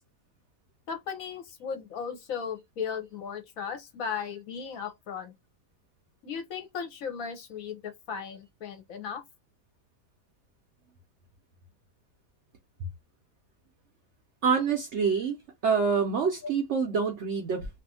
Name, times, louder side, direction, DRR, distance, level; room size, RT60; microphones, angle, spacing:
voice 1, 0.9-5.3 6.2-9.2 16.4-16.5, left 6 dB, 65° left, 1.0 m, -36 dB
voice 2, 14.4-15.4 15.6-17.7, right 5 dB, 60° right, 0.7 m, -26 dB
2.6 x 2.4 x 2.7 m
omnidirectional pair, 1.7 m